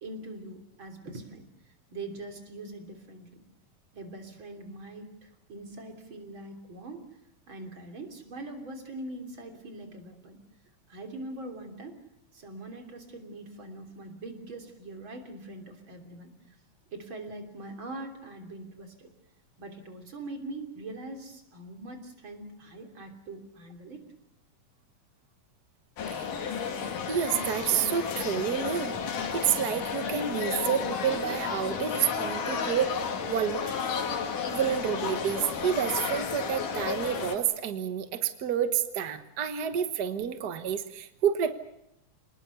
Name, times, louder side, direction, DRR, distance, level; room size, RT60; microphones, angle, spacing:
voice 1, 0.0-3.4 3.9-7.1 7.5-10.4 10.9-12.0 12.3-16.6 16.9-19.1 19.6-24.0, right 2 dB, 40° right, 4 dB, 3.8 m, -42 dB
sound 1, 26.0-37.4, left 6 dB, 80° left, 3.8 m, -32 dB
voice 2, 27.1-29.0 29.3-33.0 33.3-33.6 34.5-41.5, right 8 dB, 70° right, 9 dB, 0.9 m, -29 dB
28.5 x 20.0 x 6.9 m, 0.81 s
omnidirectional pair, 3.7 m